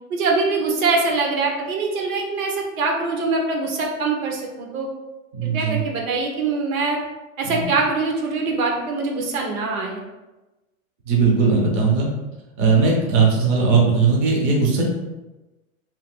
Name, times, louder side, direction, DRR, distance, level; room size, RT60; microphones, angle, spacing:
voice 1, 0.1-4.9 5.4-7.0 7.4-10.0, right 3 dB, 75° right, 1 dB, 0.9 m, -23 dB
voice 2, 5.3-5.8 7.4-7.6 11.1-12.1 12.6-14.8, right 4 dB, 25° right, -2 dB, 0.4 m, -18 dB
2.8 x 2.5 x 3.5 m, 1.1 s
supercardioid pair, 150°, 42 cm